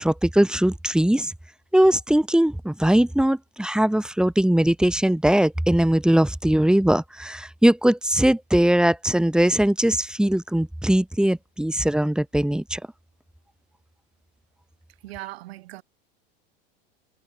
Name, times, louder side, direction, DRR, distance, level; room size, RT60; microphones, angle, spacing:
voice 1, 0.0-1.3 1.7-12.8, right 1 dB, ahead, 1.4 m, -20 dB
voice 2, 15.0-15.8, right 17 dB, 75° right, 7.8 m, -38 dB
hypercardioid pair, 100°, 31 cm